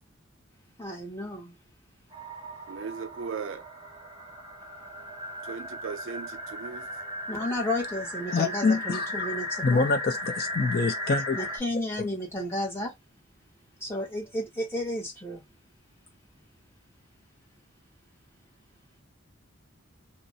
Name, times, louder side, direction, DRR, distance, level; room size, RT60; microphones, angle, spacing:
voice 1, 0.8-1.6 7.3-9.8 11.3-12.9 13.8-15.4, left 1 dB, 10° left, 0.8 m, -32 dB
sound 1, 2.1-11.6, left 1 dB, 20° right, 0.7 m, -36 dB
voice 2, 2.7-3.6 5.4-6.9, right 5 dB, 65° right, 0.4 m, -37 dB
voice 3, 8.3-9.3 9.6-11.4, left 4 dB, 45° left, 0.4 m, -26 dB
2.4 x 2.0 x 2.6 m
head